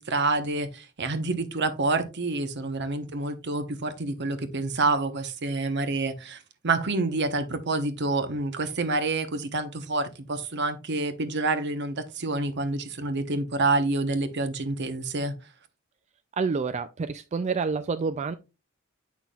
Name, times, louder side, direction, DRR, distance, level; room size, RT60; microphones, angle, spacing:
voice 1, 0.0-6.4 6.6-15.3, right 3 dB, 55° right, 1.0 m, -28 dB
voice 2, 16.4-18.3, right 4 dB, 35° right, 0.3 m, -28 dB
8.4 x 5.8 x 2.3 m
head